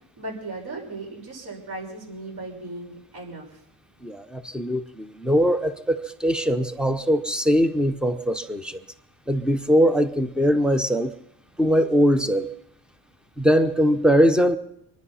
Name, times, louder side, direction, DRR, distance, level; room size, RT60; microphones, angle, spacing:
voice 1, 0.2-3.5, right 2 dB, 60° right, -1 dB, 5.8 m, -36 dB
voice 2, 4.0-8.8 9.3-11.1 11.6-12.5 13.4-14.6, equal, ahead, 10 dB, 0.6 m, -21 dB
25.5 x 10.0 x 5.6 m, 0.76 s
cardioid pair, 180°, 42 cm